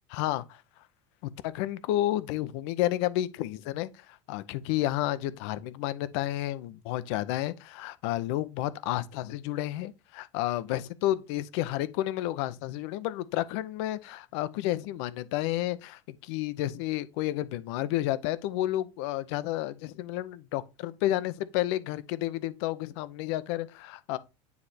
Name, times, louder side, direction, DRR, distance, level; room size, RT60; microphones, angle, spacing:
voice 1, 0.1-0.6 1.2-24.2, left 14 dB, 65° left, 0.7 m, -31 dB
9.5 x 3.3 x 4.2 m
supercardioid pair, 145°, 15 cm